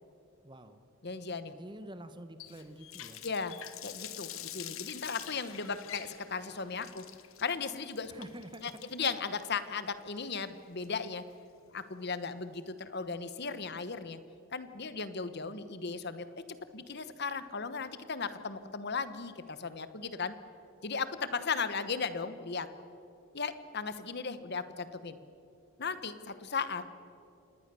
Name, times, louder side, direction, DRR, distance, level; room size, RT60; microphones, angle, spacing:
voice 1, 0.4-0.8 1.5-3.2 8.1-8.6, right 1 dB, 20° right, 10 dB, 1.2 m, -47 dB
voice 2, 1.0-1.5 3.2-3.6 3.8-7.0 7.4-8.1 8.6-11.2 11.7-14.2 14.5-16.3 16.7-20.3 20.8-22.7 23.3-25.2 25.8-26.8, left 5 dB, 50° left, 12 dB, 1.1 m, -36 dB
Water tap faucet, 2.4-11.3, left 11 dB, 70° left, 1.3 m, -47 dB
26.5 x 19.5 x 7.0 m, 2.7 s
head